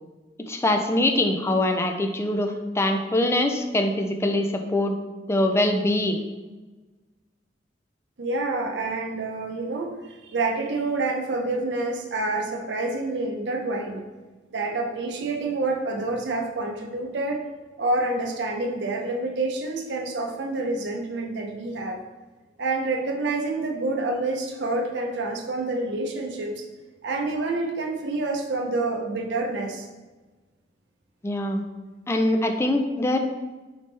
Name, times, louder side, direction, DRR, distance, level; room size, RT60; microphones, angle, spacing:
voice 1, 0.5-4.9 5.3-6.2 31.2-31.6 32.1-33.2, left 1 dB, 15° left, 5 dB, 0.3 m, -23 dB
voice 2, 8.2-14.0 14.5-17.4 17.8-22.0 22.6-26.6 27.0-29.9, right 2 dB, 80° right, 2 dB, 0.6 m, -28 dB
4.0 x 3.5 x 3.2 m, 1.2 s
head